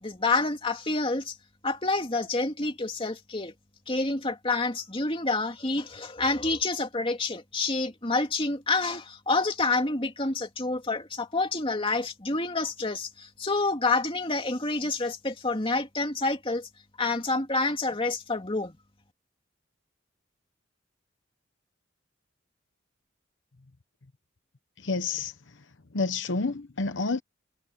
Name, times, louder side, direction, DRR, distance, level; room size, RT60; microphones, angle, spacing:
voice 1, 0.0-1.4 1.6-3.5 3.9-16.7 17.0-18.8, left 3 dB, 25° left, 2.7 m, -28 dB
voice 2, 24.8-25.3 25.9-27.2, left 3 dB, 70° left, 1.0 m, -29 dB
head